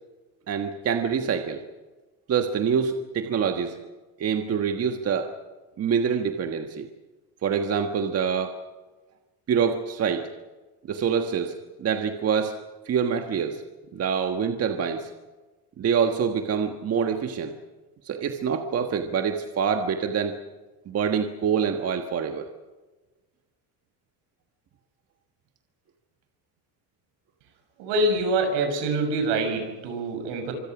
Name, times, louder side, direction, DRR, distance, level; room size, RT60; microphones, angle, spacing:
voice 1, 0.5-1.6 2.3-3.8 4.2-5.3 5.8-6.9 7.4-8.6 9.5-10.3 10.9-12.6 12.8-13.6 13.9-15.1 15.8-17.5 18.0-20.4 20.9-22.5, right 7 dB, 35° right, 5 dB, 1.5 m, -26 dB
voice 2, 27.8-30.5, right 2 dB, 75° right, 5 dB, 6.9 m, -25 dB
25.5 x 24.5 x 6.2 m, 1.2 s
cardioid pair, 135°, 43 cm